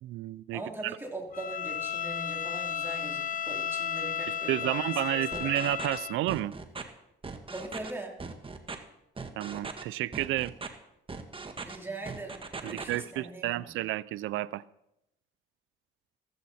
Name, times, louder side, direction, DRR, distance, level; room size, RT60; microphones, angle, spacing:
voice 1, 0.0-0.9 4.5-6.5 9.4-10.5 12.6-14.6, right 15 dB, 90° right, 0.5 m, -31 dB
voice 2, 0.5-5.5 7.5-8.2 11.6-13.6, right 2 dB, 10° right, 3.2 m, -41 dB
Bowed string instrument, 1.3-6.2, left 8 dB, 45° left, 0.6 m, -34 dB
sound 1, 5.3-6.0 6.3-6.8 7.2-7.9 8.2-8.8 9.2-9.8 10.1-10.7 11.1-11.8 12.1-13.0, right 4 dB, 25° right, 1.6 m, -39 dB
15.0 x 14.0 x 4.3 m
cardioid pair, 90°, 20 cm